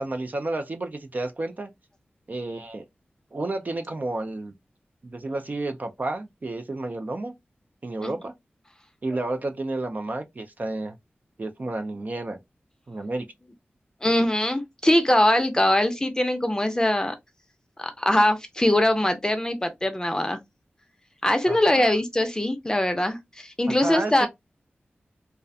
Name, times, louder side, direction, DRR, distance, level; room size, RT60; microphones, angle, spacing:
voice 1, 0.0-1.7 2.3-2.9 3.3-4.5 5.0-7.3 7.8-8.3 9.0-11.0 11.4-12.4 12.9-13.3 21.5-21.9 23.8-24.3, right 2 dB, 45° right, 0.4 m, -31 dB
voice 2, 14.0-17.1 17.8-20.4 21.2-23.2 23.4-24.3, left 1 dB, 20° left, 0.5 m, -22 dB
2.4 x 2.1 x 2.6 m
wide cardioid pair, 60°, 4 cm